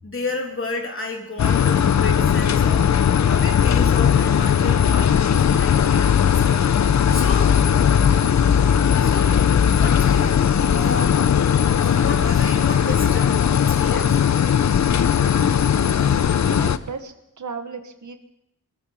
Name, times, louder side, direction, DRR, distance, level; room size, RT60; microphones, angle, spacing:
voice 1, 0.0-7.6 9.0-9.4 9.6-10.4 10.7-11.2 11.8-14.2, left 2 dB, 40° left, 1 dB, 2.9 m, -32 dB
sound 1, 1.4-16.8, left 8 dB, 55° left, 0.6 m, -18 dB
voice 2, 15.5-18.2, right 5 dB, 60° right, 7 dB, 1.5 m, -36 dB
23.5 x 13.5 x 4.4 m, 0.83 s
wide cardioid pair, 150°, 34 cm